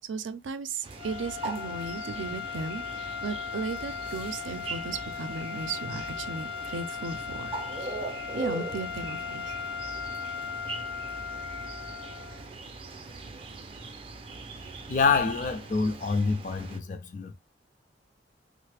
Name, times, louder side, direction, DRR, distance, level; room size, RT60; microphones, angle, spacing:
voice 1, 0.1-7.5 7.8-8.0 8.3-9.5, right 4 dB, 85° right, 0.5 m, -36 dB
sound 1, 0.8-16.8, right 3 dB, 30° right, 0.4 m, -41 dB
sound 2, 0.9-12.5, left 7 dB, 80° left, 0.7 m, -37 dB
voice 2, 14.9-17.3, left 4 dB, 45° left, 0.4 m, -26 dB
3.2 x 2.0 x 3.3 m
head